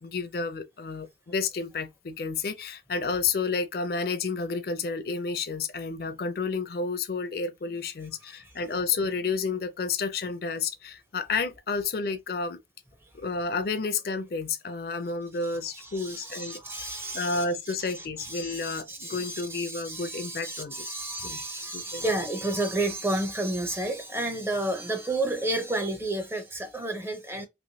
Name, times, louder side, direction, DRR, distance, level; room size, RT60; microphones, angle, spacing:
voice 1, 0.0-12.6 13.2-16.6 17.1-20.9 21.2-21.4 21.7-22.1, left 4 dB, 55° left, 0.4 m, -31 dB
voice 2, 15.7-17.4 17.8-27.5, right 2 dB, 15° right, 0.5 m, -31 dB
3.1 x 2.9 x 2.7 m
head